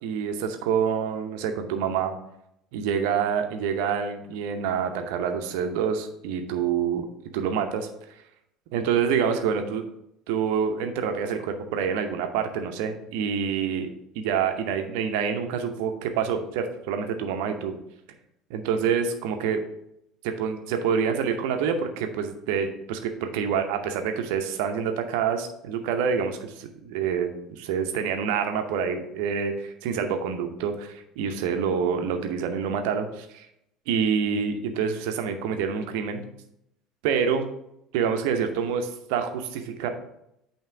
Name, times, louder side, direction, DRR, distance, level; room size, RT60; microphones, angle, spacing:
voice 1, 0.0-2.1 2.7-7.1 7.3-7.9 8.7-9.8 10.3-13.9 14.1-17.7 18.5-19.6 20.2-33.5 33.9-36.2 37.0-37.4 37.9-39.9, right 7 dB, 65° right, 6 dB, 0.7 m, -27 dB
8.7 x 2.9 x 4.6 m, 0.79 s
figure-of-eight pair, 60°, 0 cm